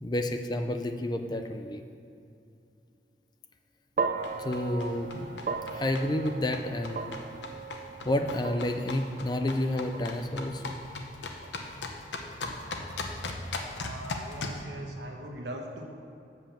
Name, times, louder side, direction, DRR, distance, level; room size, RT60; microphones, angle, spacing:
voice 1, 0.0-1.8 4.4-5.4 5.7-7.2 8.1-11.1, left 1 dB, 25° left, 6 dB, 0.4 m, -30 dB
sound 1, 4.0-12.3, right 5 dB, 45° right, 0.4 m, -38 dB
sound 2, 4.2-14.6, left 3 dB, 90° left, 0.8 m, -39 dB
voice 2, 13.8-15.8, right 1 dB, 75° right, 2 dB, 1.1 m, -40 dB
7.2 x 5.5 x 7.2 m, 2.6 s
head